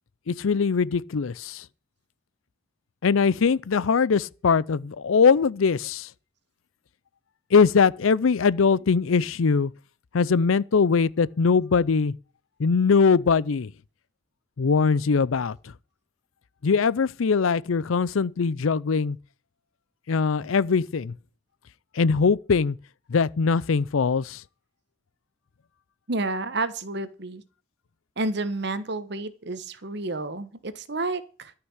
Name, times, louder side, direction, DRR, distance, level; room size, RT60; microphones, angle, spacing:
voice 1, 0.3-1.6 3.0-6.1 7.5-9.7 10.1-12.1 12.6-13.7 14.6-15.6 16.6-19.2 20.1-21.1 21.9-22.8 23.1-24.4, left 5 dB, 85° left, 0.5 m, -21 dB
voice 2, 26.1-27.4 28.2-31.5, right 2 dB, 55° right, 1.2 m, -30 dB
13.0 x 5.9 x 8.1 m
head